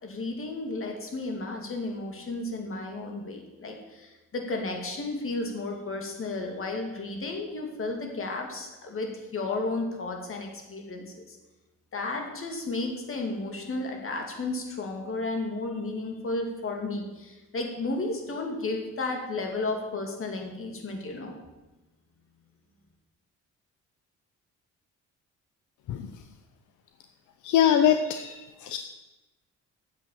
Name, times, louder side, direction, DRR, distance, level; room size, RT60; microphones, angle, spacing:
voice 1, 0.0-11.4 11.9-21.4, left 2 dB, 45° left, 2 dB, 2.5 m, -33 dB
voice 2, 27.4-28.8, left 9 dB, 80° left, 8 dB, 0.7 m, -23 dB
8.8 x 7.5 x 7.1 m, 1.1 s
cardioid pair, 90°, 30 cm